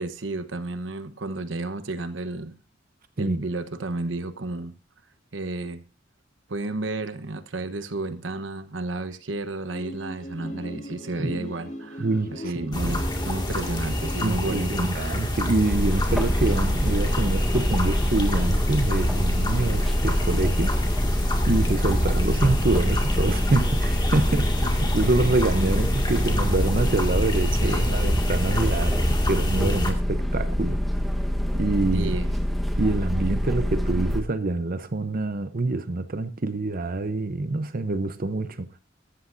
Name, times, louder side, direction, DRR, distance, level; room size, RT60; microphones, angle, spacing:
voice 1, 0.0-2.6 3.2-4.7 5.3-5.8 6.5-12.1 12.3-14.7 24.6-24.7 27.6-27.9 31.9-32.4, right 2 dB, 85° right, 1.0 m, -32 dB
sound 1, 9.7-14.9, equal, 40° left, 2.2 m, -38 dB
voice 2, 12.0-13.0 14.2-20.8 21.5-30.8 31.5-32.1 32.8-38.7, right 2 dB, 50° right, 0.8 m, -26 dB
sound 2, 12.7-29.9, left 1 dB, 25° left, 2.0 m, -27 dB
sound 3, 15.7-34.2, equal, ahead, 1.1 m, -25 dB
14.5 x 13.0 x 2.6 m
head